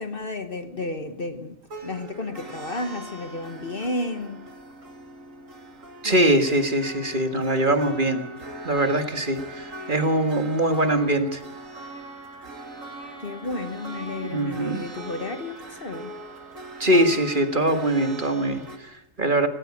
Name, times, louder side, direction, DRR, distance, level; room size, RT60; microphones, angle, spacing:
voice 1, 0.0-1.6 1.8-4.4 6.0-6.2 13.2-16.1, left 2 dB, 40° left, 1.4 m, -32 dB
sound 1, 1.6-18.8, right 1 dB, 65° right, 2.5 m, -40 dB
voice 2, 6.0-8.3 8.6-11.4 14.2-14.9 16.8-19.5, right 1 dB, 35° right, 1.8 m, -22 dB
18.5 x 18.0 x 8.5 m
omnidirectional pair, 1.5 m